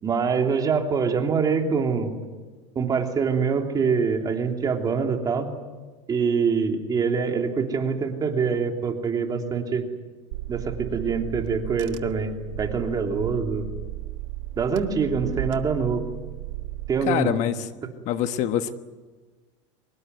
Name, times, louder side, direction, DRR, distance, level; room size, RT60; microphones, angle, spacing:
voice 1, 0.0-2.1 2.7-5.5 6.1-9.8 10.5-12.3 12.6-13.6 14.6-16.1 16.9-17.4, right 5 dB, 25° right, 3 dB, 3.1 m, -24 dB
Car / Engine, 10.3-16.9, right 15 dB, 90° right, 1.5 m, -35 dB
voice 2, 17.0-17.7 18.1-18.7, left 10 dB, 50° left, 10 dB, 1.2 m, -24 dB
24.5 x 21.0 x 9.5 m, 1.3 s
supercardioid pair, 140°, 16 cm